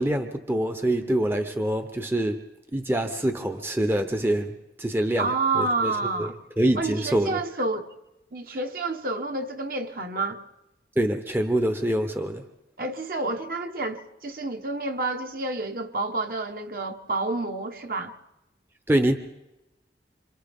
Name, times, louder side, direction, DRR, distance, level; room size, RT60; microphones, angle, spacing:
voice 1, 0.0-2.4 2.7-6.3 6.6-7.4 11.0-12.4 18.9-19.2, right 1 dB, 10° right, 0.8 m, -25 dB
voice 2, 5.2-6.3 6.8-7.9 8.3-10.4 12.8-18.1, right 3 dB, 50° right, 1.3 m, -29 dB
27.5 x 26.5 x 3.6 m
head